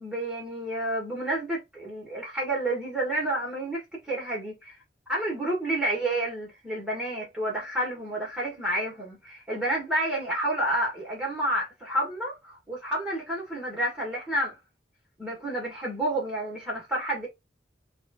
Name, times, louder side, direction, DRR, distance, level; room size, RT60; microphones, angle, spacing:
voice 1, 0.0-4.8 5.1-14.6 15.2-17.3, right 1 dB, 5° right, 1.6 m, -30 dB
3.5 x 2.6 x 3.5 m
head